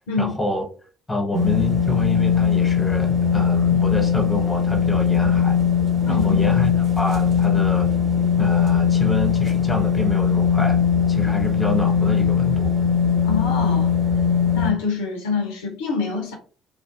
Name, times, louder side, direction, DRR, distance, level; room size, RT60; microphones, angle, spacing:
voice 1, 0.2-0.7 1.1-5.6 6.1-8.0 8.4-12.8, left 1 dB, 20° left, 0.6 m, -27 dB
sound 1, 1.3-14.7, left 7 dB, 50° right, 0.9 m, -20 dB
voice 2, 6.0-6.4 13.2-13.9 14.5-16.3, left 5 dB, 75° left, 0.5 m, -25 dB
2.3 x 2.1 x 2.5 m
figure-of-eight pair, 50°, 0 cm